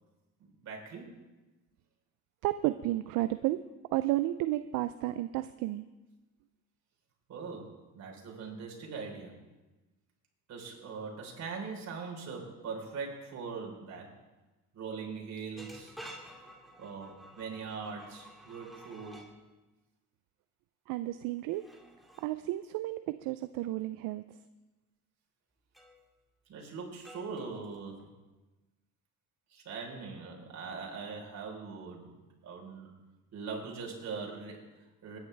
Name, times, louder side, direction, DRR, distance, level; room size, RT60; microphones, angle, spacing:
voice 1, 0.4-1.1 7.3-9.4 10.5-14.1 14.7-16.0 16.8-19.3 26.5-28.1 29.5-32.2 32.4-32.9 33.3-35.2, right 5 dB, 55° right, -1 dB, 4.0 m, -41 dB
voice 2, 2.4-3.6 3.9-5.9 20.9-21.6 22.2-24.2, right 16 dB, 75° right, 12 dB, 0.5 m, -32 dB
sound 1, 15.6-19.3 21.5-22.3 25.7-26.1 27.0-28.1, right 1 dB, ahead, 2.2 m, -51 dB
21.0 x 10.5 x 3.4 m, 1.1 s
cardioid pair, 100°, 33 cm